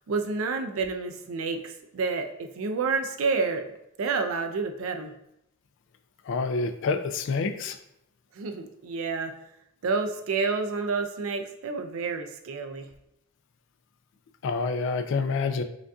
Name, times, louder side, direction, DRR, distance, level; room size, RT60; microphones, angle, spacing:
voice 1, 0.1-3.6 4.0-5.1 8.4-9.3 9.8-12.9, right 4 dB, 80° right, 6 dB, 0.4 m, -29 dB
voice 2, 6.3-7.8 14.4-15.6, left 4 dB, 65° left, 9 dB, 0.3 m, -27 dB
4.9 x 2.5 x 2.3 m, 0.79 s
head